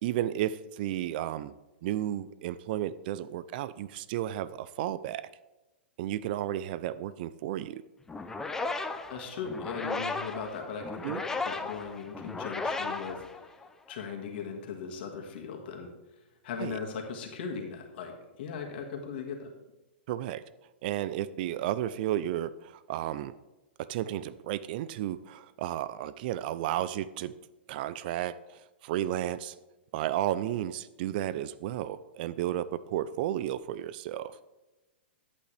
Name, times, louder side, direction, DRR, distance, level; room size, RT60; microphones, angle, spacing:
voice 1, 0.0-1.5 1.8-5.3 6.0-7.8 11.0-11.2 16.6-16.8 20.1-20.4 20.8-23.3 23.8-27.4 27.7-29.5 29.9-34.5, right 12 dB, 55° right, 17 dB, 0.5 m, -33 dB
sound 1, 8.1-13.9, left 3 dB, 10° left, 0.6 m, -35 dB
voice 2, 9.1-13.2 13.9-15.9 16.4-19.5, left 5 dB, 60° left, 2 dB, 1.9 m, -38 dB
11.0 x 8.4 x 3.4 m, 1.1 s
hypercardioid pair, 130°, 6 cm